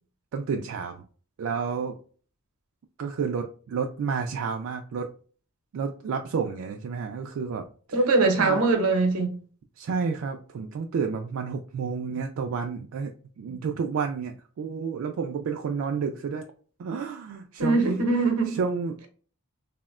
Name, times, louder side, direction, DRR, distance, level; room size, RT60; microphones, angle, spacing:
voice 1, 0.3-1.0 1.4-2.0 3.0-5.1 5.7-8.0 8.4-8.6 9.8-13.1 13.4-16.4 16.8-17.8 18.5-19.1, right 5 dB, 70° right, 0.3 m, -30 dB
voice 2, 7.9-9.3 17.6-18.5, right 3 dB, 85° right, 0.7 m, -22 dB
3.5 x 2.1 x 2.3 m
head